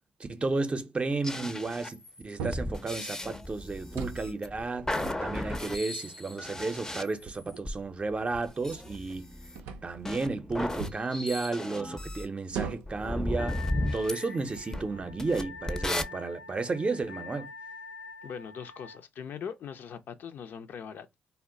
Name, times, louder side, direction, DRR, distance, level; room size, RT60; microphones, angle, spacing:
voice 1, 0.2-4.9 5.2-9.4 9.8-13.6 13.9-17.5, right 3 dB, 35° right, 0.6 m, -32 dB
sound 1, 1.2-7.8 8.6-12.3 12.9-16.0, left 1 dB, 15° left, 0.5 m, -35 dB
sound 2, 2.4-2.8 3.8-4.3 4.8-5.8 6.5-6.6 7.2-9.2 9.5-10.0 10.8-11.1 12.5-13.1 13.8-14.0 14.4-15.0, right 6 dB, 85° right, 0.5 m, -40 dB
Wind instrument woodwind instrument, 13.4-19.0, left 4 dB, 85° left, 0.8 m, -45 dB
voice 2, 18.2-21.1, left 7 dB, 65° left, 0.5 m, -41 dB
2.1 x 2.1 x 3.7 m
supercardioid pair, 50°, 4 cm